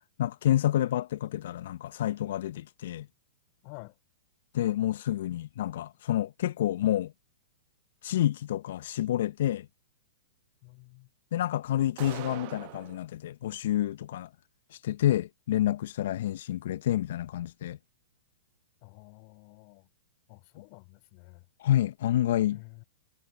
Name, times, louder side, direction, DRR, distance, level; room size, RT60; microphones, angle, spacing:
voice 1, 0.2-3.1 4.5-7.1 8.0-9.7 11.3-14.3 14.7-17.8 21.6-22.6, left 12 dB, 60° left, 0.7 m, -28 dB
voice 2, 3.6-4.0 10.6-11.1 18.8-19.9 20.3-21.4 22.5-22.8, left 34 dB, 45° left, 3.2 m, -50 dB
sound 1, 12.0-13.0, right 29 dB, 45° right, 0.9 m, -41 dB
figure-of-eight pair, 110°, 0 cm